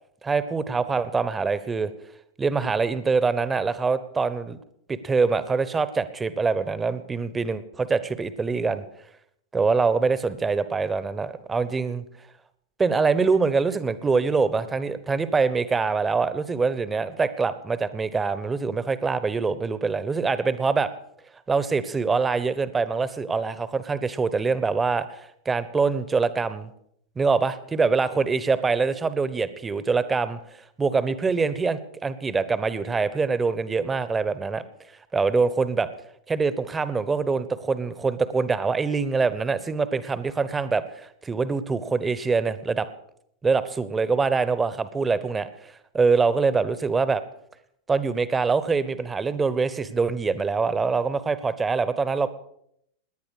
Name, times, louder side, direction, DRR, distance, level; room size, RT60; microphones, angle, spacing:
voice 1, 0.2-1.9 2.4-4.6 4.9-8.8 9.5-12.0 12.8-20.9 21.5-26.7 27.2-30.4 30.8-34.6 35.1-35.9 36.3-42.9 43.4-47.2 47.9-52.3, right 4 dB, 15° right, 15 dB, 1.1 m, -24 dB
18.5 x 10.5 x 6.6 m, 0.72 s
figure-of-eight pair, 90°, 0 cm